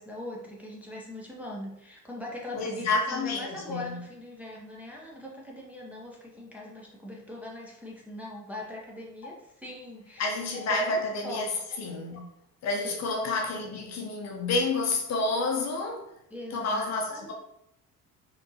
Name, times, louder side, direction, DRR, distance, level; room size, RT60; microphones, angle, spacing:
voice 1, 0.0-10.3 10.7-11.5 16.3-17.3, left 1 dB, 5° right, 0.7 m, -41 dB
voice 2, 2.5-4.0 9.2-9.3 10.2-12.2 12.6-16.1 16.5-17.3, left 3 dB, 35° left, 0.7 m, -29 dB
4.2 x 3.0 x 2.8 m
figure-of-eight pair, 55°, 47 cm